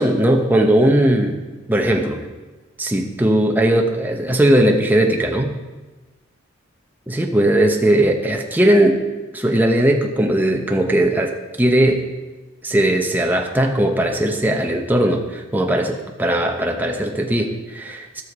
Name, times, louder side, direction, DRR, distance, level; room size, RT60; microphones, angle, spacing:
voice 1, 0.0-1.4 1.7-2.3 2.8-5.6 7.1-9.0 9.3-12.1 12.6-18.2, right 1 dB, 10° right, 2 dB, 0.9 m, -18 dB
14.0 x 6.4 x 5.3 m, 1.2 s
head